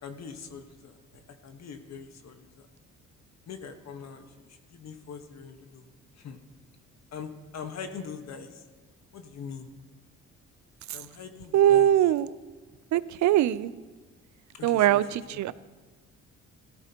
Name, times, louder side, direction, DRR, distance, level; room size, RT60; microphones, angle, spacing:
voice 1, 0.0-2.7 3.5-4.3 4.7-5.9 6.2-6.4 7.1-8.6 9.1-9.7 10.9-11.9 14.5-15.0 15.3-15.4, left 6 dB, 60° left, 6 dB, 1.4 m, -42 dB
voice 2, 11.5-12.4 12.9-13.7 14.6-15.5, right 12 dB, 70° right, 17 dB, 0.5 m, -22 dB
17.5 x 14.0 x 2.9 m, 1.3 s
cardioid pair, 90°, 30 cm